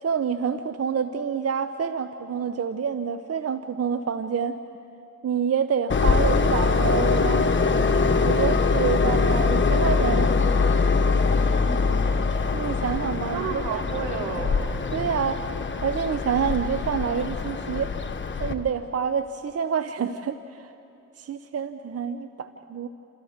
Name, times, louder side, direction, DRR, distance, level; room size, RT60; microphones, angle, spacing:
voice 1, 0.0-4.6 5.2-7.6 8.2-10.3 12.5-13.8 14.9-15.4 15.8-17.9 18.4-20.7 21.2-22.9, right 7 dB, 45° right, 10 dB, 0.9 m, -27 dB
Train, 5.9-18.5, left 4 dB, 35° left, 1.6 m, -23 dB
voice 2, 11.5-12.2 13.3-14.7, right 5 dB, 80° right, -1 dB, 3.3 m, -32 dB
29.0 x 27.5 x 3.7 m, 2.8 s
hypercardioid pair, 45°, 34 cm